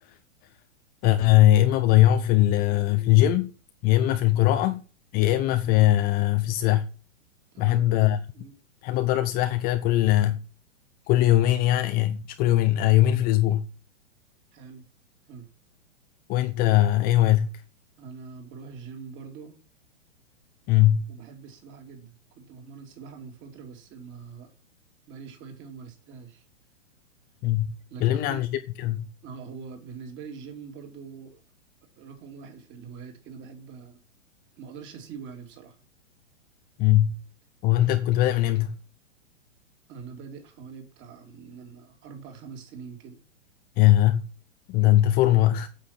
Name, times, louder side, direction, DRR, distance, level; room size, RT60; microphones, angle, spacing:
voice 1, 1.0-3.5 3.8-4.8 5.1-6.9 7.6-8.2 8.8-10.4 11.1-13.7 16.3-17.5 20.7-21.1 27.4-27.7 28.0-28.5 28.8-29.1 36.8-37.2 37.6-38.8 43.8-44.2 44.7-45.7, left 14 dB, 25° left, 0.7 m, -20 dB
voice 2, 7.5-8.0 8.3-8.5 14.5-14.8 15.3-15.5 18.0-19.6 21.1-24.5 25.1-26.4 27.9-28.4 29.2-31.4 32.0-34.0 34.6-35.8 39.9-43.2, right 5 dB, 30° right, 3.1 m, -43 dB
9.0 x 8.0 x 5.8 m
figure-of-eight pair, 110°, 38 cm